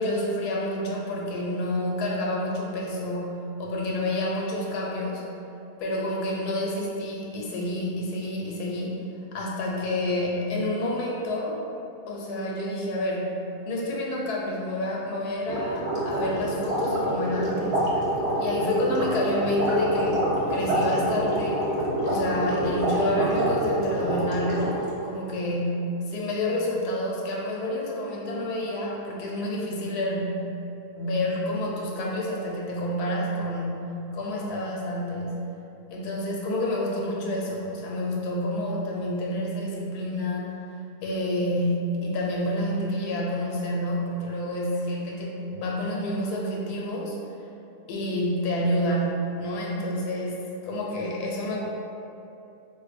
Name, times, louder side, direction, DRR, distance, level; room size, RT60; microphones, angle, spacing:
voice 1, 0.0-3.3 3.6-5.2 5.8-9.0 9.3-11.6 12.1-13.3 13.7-18.0 18.4-20.2 20.5-21.6 22.0-30.5 31.0-33.8 34.1-35.3 35.9-40.5 41.0-47.2 47.9-51.6, left 1 dB, 90° left, -3 dB, 1.2 m, -28 dB
sound 1, 15.5-24.9, right 1 dB, 50° right, 0.9 m, -26 dB
4.2 x 2.7 x 2.5 m, 2.8 s
omnidirectional pair, 1.6 m